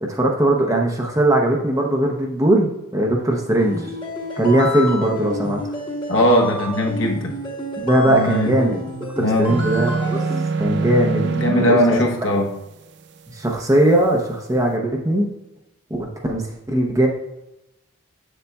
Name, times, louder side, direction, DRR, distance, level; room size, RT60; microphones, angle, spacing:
voice 1, 0.0-2.7 2.9-3.9 4.4-5.6 7.8-8.8 9.2-10.2 10.6-11.3 11.6-12.0 13.3-15.3 15.9-17.1, right 1 dB, 15° right, 0 dB, 0.7 m, -19 dB
sound 1, 3.6-10.4, left 1 dB, 20° left, 1.0 m, -30 dB
voice 2, 6.1-7.3 8.0-8.5 9.2-9.5 11.2-12.5, equal, 55° left, 0 dB, 1.0 m, -19 dB
sound 2, 9.5-11.7, right 4 dB, 50° right, 0.4 m, -23 dB
8.1 x 6.8 x 2.3 m, 0.95 s
head